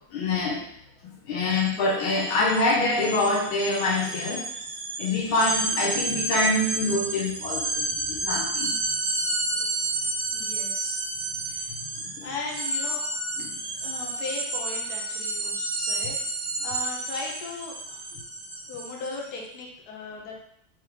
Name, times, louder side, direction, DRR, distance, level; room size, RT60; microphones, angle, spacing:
voice 1, 0.1-0.6 1.3-4.5 5.0-8.8 11.9-12.3 13.4-13.6, left 2 dB, 80° left, -1 dB, 1.6 m, -25 dB
sound 1, 1.5-1.7 2.0-19.2, right 2 dB, 50° right, 1.4 m, -31 dB
voice 2, 10.3-11.0 11.5-11.7 12.2-13.0 13.8-16.2 16.6-18.1 18.7-20.4, left 3 dB, 60° left, -1 dB, 1.3 m, -37 dB
4.6 x 3.3 x 3.5 m, 0.69 s
omnidirectional pair, 2.2 m